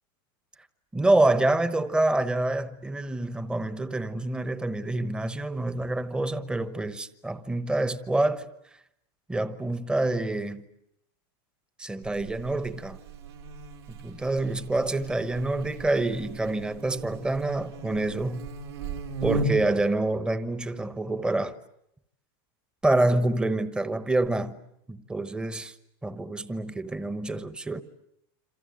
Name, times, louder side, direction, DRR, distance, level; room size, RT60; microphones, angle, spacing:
voice 1, 0.9-8.5 9.3-10.6 11.8-13.0 14.0-18.5 19.2-21.6 22.8-24.6 24.9-25.7 26.0-27.8, right 2 dB, 5° right, 1.0 m, -27 dB
Buzz, 12.0-19.8, right 2 dB, 90° right, 3.9 m, -36 dB
27.5 x 26.5 x 7.8 m
supercardioid pair, 140°, 13 cm